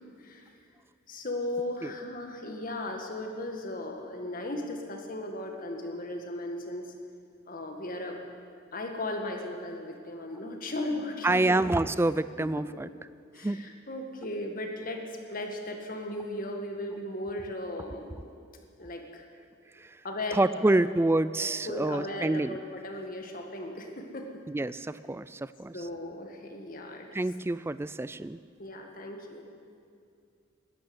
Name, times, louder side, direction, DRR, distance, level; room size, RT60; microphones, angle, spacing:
voice 1, 1.1-6.9 7.5-8.2 8.7-11.6 12.4-12.8 13.3-15.0 15.3-18.3 18.8-19.2 20.0-20.8 21.4-24.4 25.7-27.2 28.6-29.4, left 1 dB, 45° left, 3 dB, 1.8 m, -37 dB
voice 2, 11.2-12.9 13.4-13.6 19.8-20.0 20.3-22.6 24.5-25.8 27.1-28.4, right 2 dB, 10° right, 16 dB, 0.3 m, -27 dB
13.0 x 11.5 x 9.5 m, 2.4 s
head